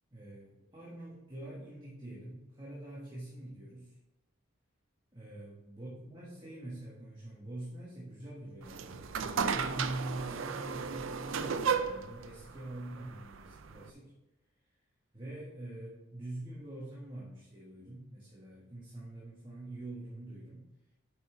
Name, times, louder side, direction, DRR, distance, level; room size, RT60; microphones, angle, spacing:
voice 1, 0.1-3.9 5.1-9.1 9.5-14.1 15.1-20.7, right 1 dB, 25° right, -7 dB, 1.6 m, -44 dB
sound 1, 8.6-13.9, right 6 dB, 70° right, 0.5 m, -35 dB
8.6 x 5.5 x 4.4 m, 1.0 s
head